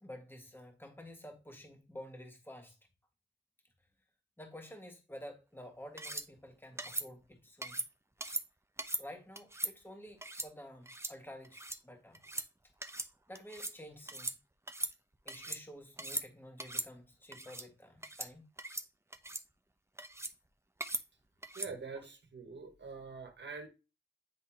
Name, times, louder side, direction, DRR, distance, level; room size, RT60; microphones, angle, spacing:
voice 1, 0.0-2.8 4.4-7.8 8.3-8.4 9.0-12.2 13.3-14.3 15.3-18.5, equal, 10° left, 1.9 m, -50 dB
sound 1, 6.0-6.3 6.8-7.1 7.6-7.9 8.2-8.4 8.8-9.0 9.4-9.7 10.2-10.5 10.9-11.1 11.4-11.8 12.1-12.5 12.8-13.1 13.3-13.8 14.1-14.4 14.7-15.6 16.0-16.3 16.6-16.9 17.3-17.7 18.0-18.3 18.6-18.9 19.1-19.4 20.0-20.3 20.8-21.0 21.4-21.7, right 1 dB, 15° right, 0.7 m, -39 dB
voice 2, 21.5-23.7, right 4 dB, 70° right, 1.6 m, -45 dB
10.0 x 3.6 x 2.9 m
cardioid pair, 55°, 19 cm